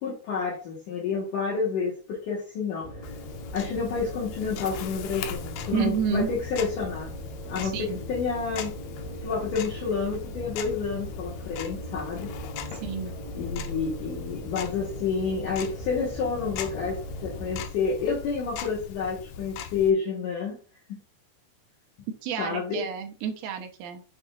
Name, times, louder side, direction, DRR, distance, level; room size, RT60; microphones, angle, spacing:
voice 1, 0.0-2.9 3.5-7.2 7.4-8.7 9.2-12.3 13.3-20.6 20.9-21.0 22.4-22.9, left 5 dB, 60° left, -4 dB, 2.7 m, -29 dB
sound 1, 2.8-17.7, right 1 dB, 30° left, 4.1 m, -40 dB
Tick-tock, 3.0-19.9, left 7 dB, 85° left, 2.7 m, -40 dB
voice 2, 5.7-6.3 7.6-8.0 12.8-13.2 22.2-24.0, right 7 dB, 70° right, 5 dB, 2.1 m, -30 dB
7.4 x 6.7 x 2.5 m, 0.36 s
omnidirectional pair, 4.5 m